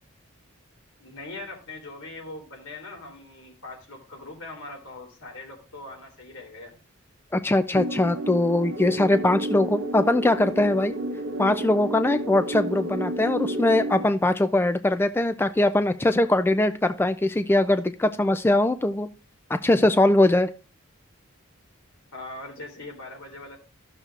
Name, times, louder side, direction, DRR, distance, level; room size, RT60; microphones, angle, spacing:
voice 1, 1.0-6.8 22.1-23.6, left 2 dB, 90° left, 1 dB, 3.3 m, -41 dB
voice 2, 7.3-10.9 11.4-19.1 19.5-20.5, left 1 dB, 10° left, 10 dB, 0.3 m, -21 dB
sound 1, 7.7-14.1, right 2 dB, 80° right, 0.8 m, -32 dB
sound 2, 8.7-13.7, left 1 dB, 25° right, 1.0 m, -37 dB
14.0 x 6.6 x 2.4 m, 0.33 s
head